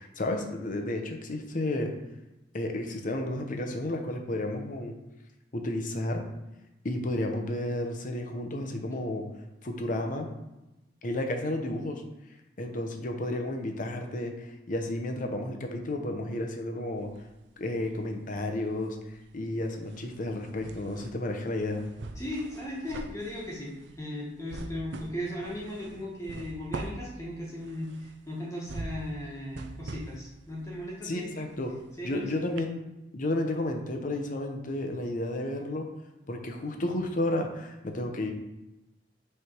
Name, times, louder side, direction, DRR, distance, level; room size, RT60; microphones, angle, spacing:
voice 1, 0.0-1.9 2.5-5.0 5.5-6.2 6.8-9.3 9.6-10.3 11.0-12.0 12.6-17.1 17.6-19.0 19.3-21.8 31.0-31.7 32.0-32.8 33.1-35.9 36.3-38.3, left 1 dB, 50° left, 4 dB, 0.8 m, -32 dB
sound 1, 17.0-18.1 18.4-32.2 32.6-32.7, right 2 dB, 80° right, 0.5 m, -44 dB
voice 2, 22.2-31.3 32.0-32.2, left 1 dB, 15° left, -5 dB, 1.3 m, -37 dB
6.5 x 3.4 x 4.5 m, 0.97 s
head